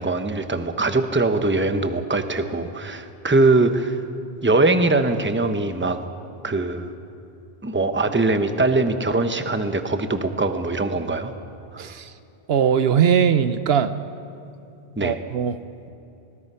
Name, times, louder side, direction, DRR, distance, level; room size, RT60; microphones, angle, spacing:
voice 1, 0.0-4.0 4.4-6.0 6.4-6.9 7.6-11.3 11.7-11.8 15.0-15.2, right 2 dB, 10° right, 8 dB, 0.9 m, -22 dB
voice 2, 11.8-12.1 12.5-13.9 15.0-15.6, right 8 dB, 75° right, 12 dB, 1.0 m, -20 dB
24.5 x 20.0 x 5.6 m, 2.7 s
omnidirectional pair, 1.0 m